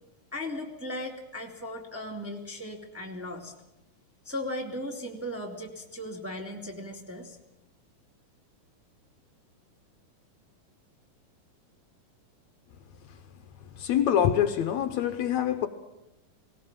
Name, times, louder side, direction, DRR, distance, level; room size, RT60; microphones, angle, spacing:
voice 1, 0.3-3.5 4.2-7.4, left 1 dB, 5° right, 1.8 m, -37 dB
voice 2, 13.6-15.7, left 10 dB, 70° left, 2.1 m, -25 dB
19.0 x 18.5 x 8.9 m
omnidirectional pair, 3.6 m